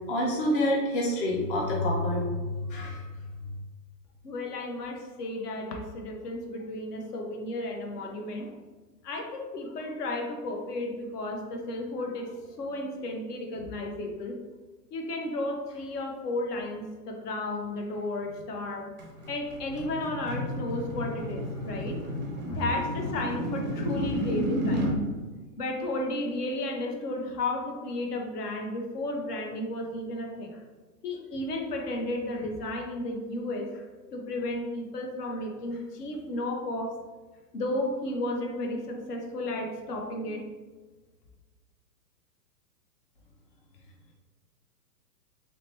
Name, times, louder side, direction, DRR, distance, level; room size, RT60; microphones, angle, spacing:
voice 1, 0.1-2.3 2.7-3.0, left 1 dB, 35° left, -2 dB, 0.4 m, -27 dB
voice 2, 4.2-8.6 9.0-14.4 14.9-18.9 19.3-22.0 22.4-24.8 25.6-30.6 31.0-33.8 34.1-37.0 37.5-40.4, left 1 dB, 70° left, 2 dB, 0.9 m, -33 dB
sound 1, 19.0-25.0, equal, 30° right, 0.4 m, -32 dB
3.1 x 2.9 x 3.2 m, 1.3 s
hypercardioid pair, 150°, 49 cm